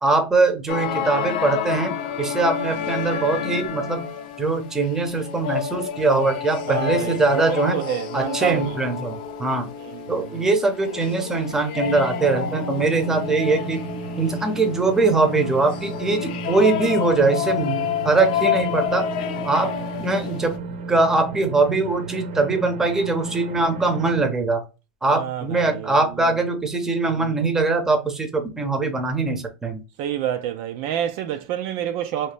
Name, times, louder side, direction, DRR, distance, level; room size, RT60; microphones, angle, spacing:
voice 1, 0.0-4.1 4.4-7.8 8.1-9.7 10.1-13.8 14.2-19.0 19.4-20.6 20.9-24.6 25.0-29.8, right 3 dB, 10° right, 0.7 m, -22 dB
sound 1, 0.7-20.6, left 9 dB, 70° left, 0.6 m, -29 dB
voice 2, 6.7-8.8 9.8-10.5 25.1-26.4 27.2-27.4 30.0-32.3, right 10 dB, 50° right, 0.3 m, -29 dB
sound 2, 11.8-24.3, right 3 dB, 75° right, 0.7 m, -34 dB
3.1 x 2.8 x 3.3 m
supercardioid pair, 145°, 5 cm